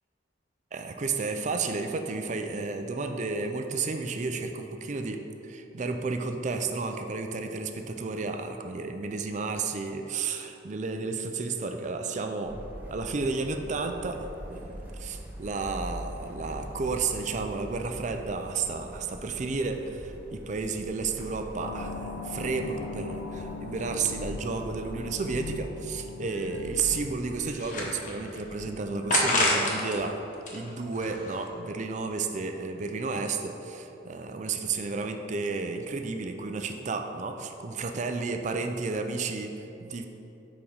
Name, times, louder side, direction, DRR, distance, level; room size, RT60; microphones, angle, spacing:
voice 1, 0.7-12.6 12.9-30.2 30.5-40.1, right 4 dB, 40° right, 6 dB, 0.4 m, -32 dB
sound 1, 12.4-25.5, equal, 10° right, 1.2 m, -43 dB
sound 2, 21.6-30.4, left 3 dB, 85° left, 0.5 m, -40 dB
sound 3, 27.4-28.4 29.1-30.0 30.3-31.5, left 2 dB, 45° left, 1.0 m, -28 dB
5.0 x 4.8 x 5.5 m, 2.9 s
head